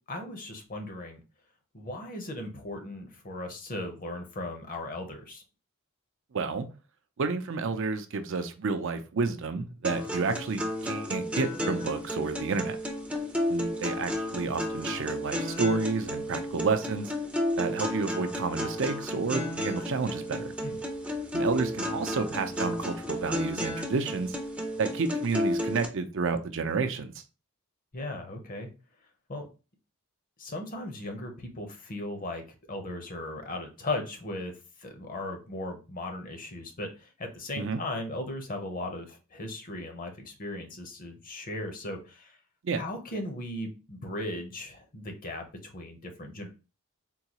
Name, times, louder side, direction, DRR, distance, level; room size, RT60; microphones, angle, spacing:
voice 1, 0.1-1.2 1.7-5.4 20.6-20.8 27.9-28.7 29.3-29.5 30.4-34.5 34.8-42.4 42.8-46.5, left 1 dB, 40° left, 0.8 m, -37 dB
voice 2, 6.3-6.7 7.2-12.8 13.5-17.1 17.6-20.5 21.3-24.3 24.8-27.1 37.6-37.8 42.6-42.8, right 4 dB, 60° right, 0.5 m, -30 dB
sound 1, 9.8-25.9, left 1 dB, 5° right, 0.5 m, -32 dB
3.8 x 2.3 x 2.9 m
head